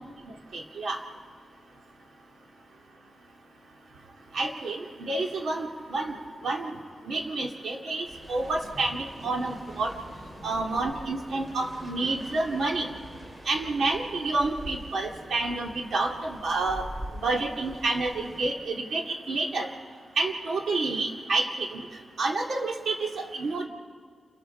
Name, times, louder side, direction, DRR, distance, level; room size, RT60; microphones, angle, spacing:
voice 1, 0.5-1.0 4.3-6.1 6.4-6.7 7.1-9.9 10.4-12.9 13.5-16.9 17.2-19.7 20.2-21.8 22.2-23.7, right 3 dB, 80° right, 1 dB, 2.2 m, -29 dB
sound 1, 8.1-18.5, right 1 dB, 40° right, 3.0 m, -44 dB
29.5 x 23.0 x 4.4 m, 2.1 s
wide cardioid pair, 95°, 0 cm